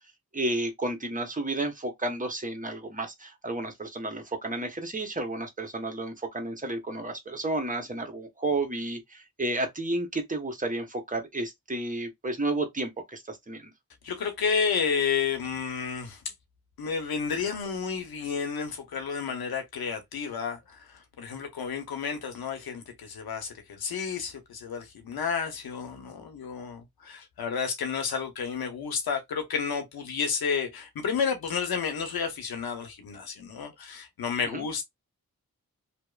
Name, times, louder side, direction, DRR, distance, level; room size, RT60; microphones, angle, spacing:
voice 1, 0.3-13.7 34.5-34.7, right 2 dB, 20° right, 0.9 m, -32 dB
voice 2, 14.0-16.2 16.8-34.8, left 6 dB, 85° left, 0.7 m, -31 dB
2.8 x 2.0 x 2.3 m
cardioid pair, 40°, 36 cm